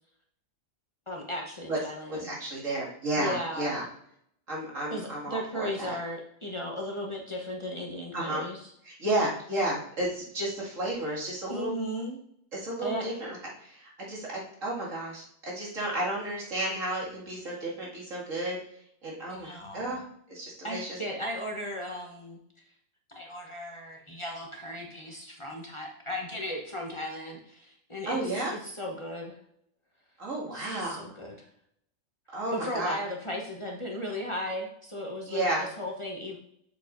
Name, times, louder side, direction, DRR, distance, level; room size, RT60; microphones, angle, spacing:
voice 1, 1.1-2.3 3.1-3.8 4.9-8.6 11.5-12.2 12.8-13.0 19.3-20.1 20.6-22.4 23.1-29.4 30.5-31.5 32.5-36.4, equal, 25° left, 0 dB, 1.0 m, -36 dB
voice 2, 2.1-3.9 4.5-6.0 8.1-8.5 8.8-11.7 12.5-18.6 19.0-21.0 28.1-28.5 30.2-31.1 32.3-32.9 35.3-35.7, right 1 dB, 85° right, -4 dB, 2.7 m, -32 dB
7.4 x 6.8 x 2.6 m, 0.70 s
omnidirectional pair, 1.3 m